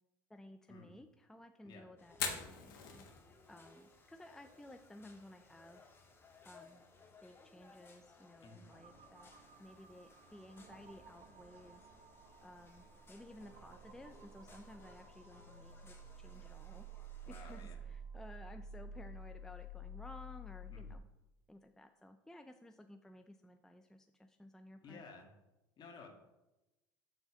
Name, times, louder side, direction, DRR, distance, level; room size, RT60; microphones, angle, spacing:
voice 1, 0.3-5.8 6.4-6.8 7.2-9.3 9.6-11.9 12.4-16.8 17.3-21.0 21.5-25.0, left 1 dB, 5° left, 7 dB, 0.4 m, -56 dB
sound 1, 2.0-17.7, left 3 dB, 20° left, 1.7 m, -63 dB
Fire, 2.1-16.0, left 6 dB, 80° left, 1.3 m, -51 dB
sound 2, 8.7-21.0, right 1 dB, 50° right, 0.9 m, -52 dB
voice 2, 17.2-17.8 20.7-20.9 24.8-25.3 25.8-26.1, left 4 dB, 45° left, 1 dB, 1.9 m, -54 dB
6.9 x 3.9 x 5.8 m, 0.97 s
hypercardioid pair, 85°, 11 cm